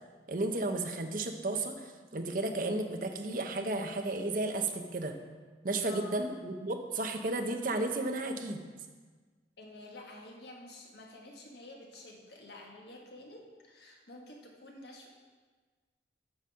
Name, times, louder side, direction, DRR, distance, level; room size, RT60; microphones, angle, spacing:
voice 1, 0.3-5.1 5.6-8.7, right 2 dB, 50° right, 5 dB, 0.8 m, -33 dB
voice 2, 5.8-6.3 9.6-15.1, left 2 dB, 70° left, 0 dB, 1.6 m, -49 dB
8.9 x 5.4 x 6.3 m, 1.4 s
head